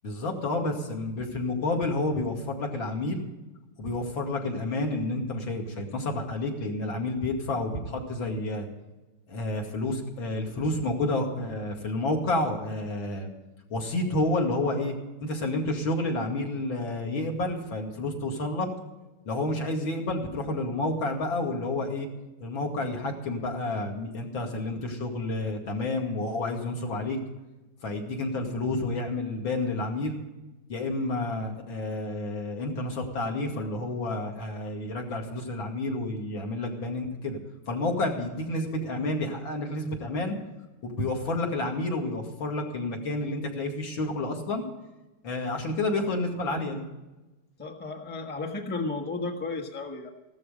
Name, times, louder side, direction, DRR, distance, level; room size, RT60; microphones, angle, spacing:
voice 1, 0.0-3.2 3.8-8.7 9.3-13.3 13.7-14.9 15.2-18.7 19.2-22.1 22.4-27.2 27.8-30.2 30.7-37.4 37.7-40.3 40.8-44.6 45.2-46.8, left 2 dB, 65° left, 1 dB, 3.0 m, -30 dB
voice 2, 47.6-50.1, left 3 dB, 5° left, 3 dB, 1.0 m, -33 dB
15.5 x 13.0 x 5.2 m, 1.1 s
omnidirectional pair, 2.4 m